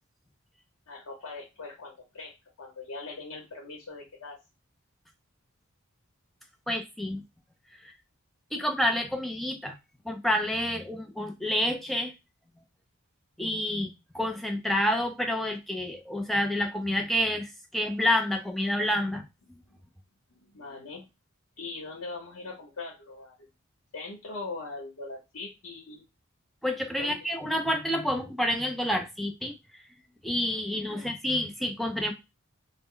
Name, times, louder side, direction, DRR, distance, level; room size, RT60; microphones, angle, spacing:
voice 1, 0.9-2.3 2.6-4.4 19.7-19.8 20.4-21.1 21.6-23.5 23.9-26.0 27.0-27.3 30.9-31.1, left 3 dB, 85° left, -1 dB, 0.8 m, -41 dB
voice 2, 6.7-7.2 8.5-9.7 10.1-12.1 13.4-19.2 26.6-29.6 30.2-32.1, left 1 dB, ahead, 4 dB, 0.4 m, -28 dB
2.1 x 2.0 x 3.7 m, 0.24 s
head